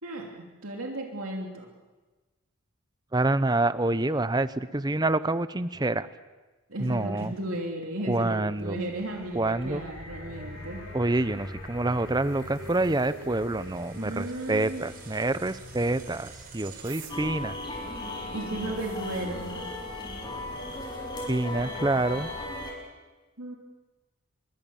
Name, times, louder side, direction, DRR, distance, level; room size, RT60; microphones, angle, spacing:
voice 1, 0.0-1.7 6.7-10.8 14.0-14.8 18.3-19.7 23.4-23.6, right 1 dB, 70° right, 0 dB, 3.0 m, -35 dB
voice 2, 3.1-6.1 6.8-7.3 8.1-8.8 9.3-9.8 10.9-17.5 21.2-22.3, right 2 dB, 20° right, 14 dB, 0.7 m, -27 dB
sound 1, 8.4-17.1, right 2 dB, 40° right, 4.4 m, -46 dB
sound 2, 9.0-19.2 19.9-20.0, left 2 dB, 70° left, 3.9 m, -47 dB
sound 3, 17.1-22.7, left 1 dB, 20° left, 6.3 m, -36 dB
25.0 x 23.0 x 7.2 m, 1.2 s
head